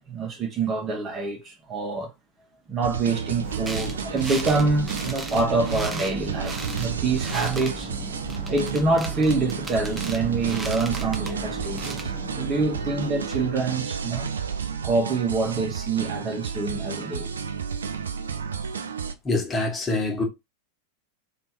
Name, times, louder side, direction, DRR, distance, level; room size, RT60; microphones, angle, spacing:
voice 1, 0.1-2.1 2.7-7.9 8.5-14.3 14.8-17.3, right 3 dB, 30° right, 1.2 m, -26 dB
sound 1, 2.8-19.1, right 6 dB, 70° right, 0.4 m, -31 dB
sound 2, 3.4-13.6, right 2 dB, 10° right, 0.7 m, -36 dB
voice 2, 19.2-20.2, left 2 dB, 20° left, 1.4 m, -25 dB
3.4 x 2.9 x 4.5 m
figure-of-eight pair, 90°, 0 cm